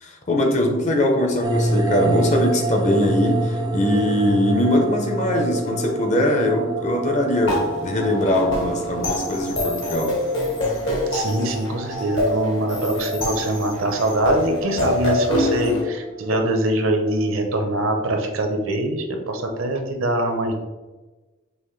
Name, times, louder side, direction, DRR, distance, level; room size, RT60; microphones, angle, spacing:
voice 1, 0.0-10.2, left 1 dB, 35° left, 2 dB, 0.7 m, -21 dB
sound 1, 1.4-17.3, right 2 dB, 20° right, 0.4 m, -28 dB
sound 2, 7.5-15.8, left 1 dB, 60° left, 1.2 m, -25 dB
voice 2, 11.1-20.6, right 1 dB, 70° right, 4 dB, 0.7 m, -23 dB
5.5 x 2.6 x 3.2 m, 1.2 s
head